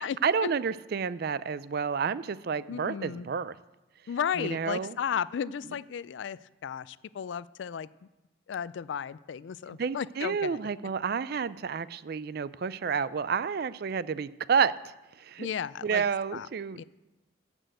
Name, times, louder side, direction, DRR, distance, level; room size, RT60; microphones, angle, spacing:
voice 1, 0.2-3.6 4.4-5.0 9.7-15.5 15.8-16.8, right 6 dB, 55° right, 17 dB, 0.4 m, -30 dB
voice 2, 2.7-3.3 4.1-7.9 8.5-10.6 15.4-16.0 16.3-16.5 16.8-16.9, left 8 dB, 70° left, 19 dB, 0.3 m, -34 dB
13.0 x 6.2 x 7.9 m, 1.0 s
head